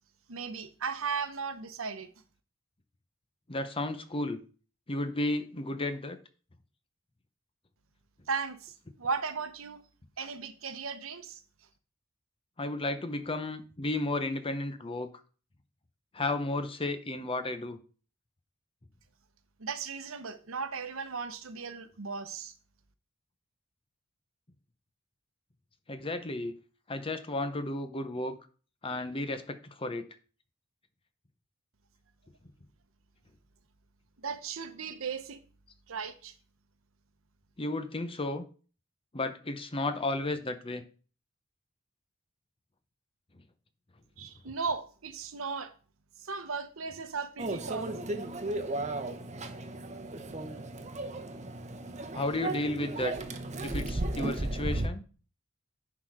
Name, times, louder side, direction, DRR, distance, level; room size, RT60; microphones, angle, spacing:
voice 1, 0.3-2.1 8.3-9.8 10.2-11.4 19.6-22.5 34.2-35.4 35.9-36.3 44.2-45.7 46.2-47.9, right 5 dB, 75° right, 0.9 m, -36 dB
voice 2, 3.5-4.4 4.9-6.2 12.6-15.1 16.1-17.8 25.9-26.5 26.9-28.4 28.8-30.0 37.6-38.4 39.1-40.8 44.5-44.6 52.1-53.1 53.6-55.1, left 2 dB, 25° left, 0.8 m, -33 dB
Microwave oven, 47.4-54.9, right 2 dB, 35° right, 0.9 m, -35 dB
10.5 x 4.0 x 4.8 m
head